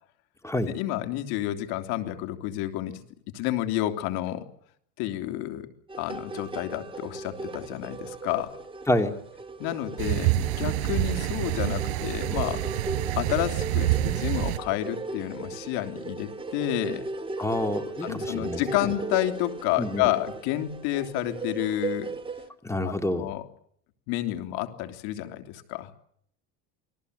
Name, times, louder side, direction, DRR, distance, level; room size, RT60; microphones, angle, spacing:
voice 1, 0.7-3.0 3.3-4.5 5.0-5.7 6.0-8.5 9.6-12.9 13.2-17.1 18.0-22.1 22.8-22.9 23.2-23.4 24.1-25.9, left 14 dB, 75° left, 7 dB, 3.4 m, -30 dB
sound 1, 5.9-22.5, right 3 dB, 15° right, 2.9 m, -37 dB
voice 2, 8.9-9.2 17.4-18.9 19.8-20.1 22.6-23.3, left 1 dB, 5° left, 7 dB, 2.9 m, -28 dB
sound 2, 10.0-14.6, right 16 dB, 80° right, 4.6 m, -27 dB
28.5 x 22.0 x 8.2 m, 0.68 s
cardioid pair, 130°, 39 cm